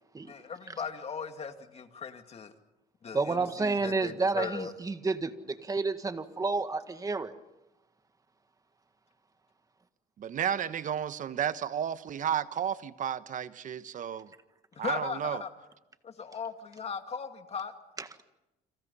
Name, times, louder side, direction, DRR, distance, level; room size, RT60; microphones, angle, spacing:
voice 1, 0.3-2.5 3.0-4.7 14.7-15.5 16.0-17.7, left 6 dB, 40° left, 2.4 m, -38 dB
voice 2, 3.1-7.3 18.0-18.1, right 3 dB, 20° right, 1.8 m, -30 dB
voice 3, 10.2-14.3 14.8-15.4, right 9 dB, 50° right, 1.2 m, -32 dB
30.0 x 26.5 x 5.6 m
cardioid pair, 110°, 17 cm